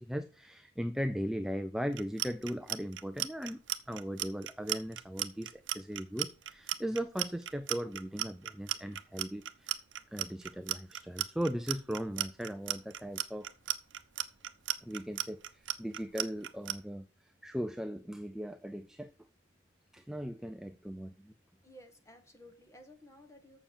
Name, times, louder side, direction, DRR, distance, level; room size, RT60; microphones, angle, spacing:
voice 1, 0.0-3.6 3.9-9.7 10.1-13.5 14.8-17.1 17.4-19.1 19.9-21.3, equal, 5° right, 0.4 m, -38 dB
Clock, 1.9-16.8, right 12 dB, 75° right, 0.8 m, -35 dB
voice 2, 21.6-23.6, equal, 15° left, 1.6 m, -55 dB
7.1 x 7.0 x 7.1 m
head